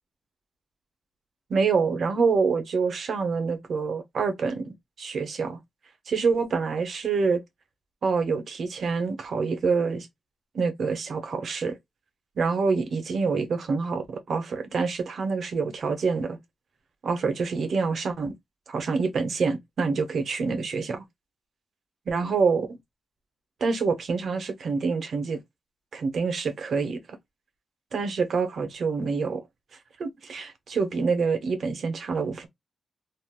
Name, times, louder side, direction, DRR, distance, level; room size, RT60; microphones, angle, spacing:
voice 1, 1.5-5.6 6.1-7.4 8.0-10.1 10.5-11.8 12.4-16.4 17.0-18.4 18.7-21.0 22.1-22.8 23.6-25.4 25.9-27.2 27.9-29.4 30.0-32.5, right 4 dB, 75° right, 0.9 m, -26 dB
3.3 x 2.5 x 2.3 m
cardioid pair, 65°, 0 cm